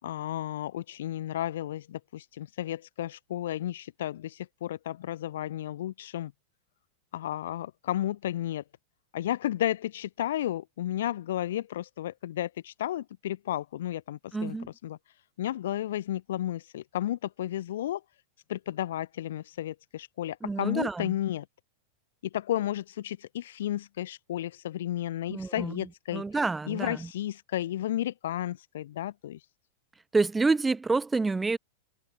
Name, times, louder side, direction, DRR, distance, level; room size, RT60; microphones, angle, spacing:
voice 1, 0.0-6.3 7.1-8.6 9.1-14.6 14.8-15.0 15.4-18.0 18.5-21.4 22.3-26.2 26.7-29.4, left 12 dB, 60° left, 0.9 m, -33 dB
voice 2, 14.3-14.7 20.4-21.1 25.3-25.8 26.1-27.1 30.1-31.6, right 3 dB, 10° right, 3.1 m, -28 dB
figure-of-eight pair, 90°, 0 cm